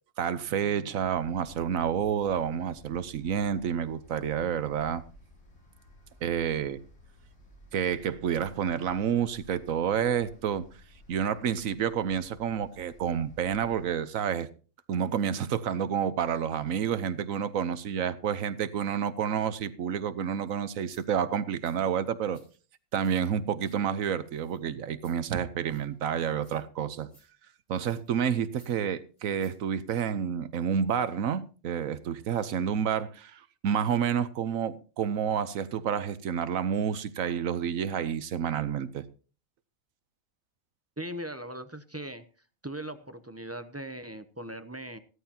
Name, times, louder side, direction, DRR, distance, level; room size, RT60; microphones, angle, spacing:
voice 1, 0.2-5.0 6.2-6.8 7.7-10.7 11.1-14.5 14.9-22.4 22.9-27.1 27.7-39.0, right 8 dB, 80° right, 1.3 m, -29 dB
sound 1, 1.0-13.9, left 1 dB, 85° left, 4.1 m, -55 dB
sound 2, 20.3-20.4 20.8-21.0 21.6-21.8 22.3-23.1 23.4-23.8 24.2-24.6 25.0-25.2 25.7-26.0 26.4-26.8 27.1-27.3 27.8-28.1 28.5-28.8 29.1-29.6 29.9-30.0, left 1 dB, 65° left, 7.9 m, -62 dB
voice 2, 41.0-42.2 42.6-45.0, right 1 dB, 20° right, 0.4 m, -39 dB
15.5 x 13.0 x 2.9 m
omnidirectional pair, 1.4 m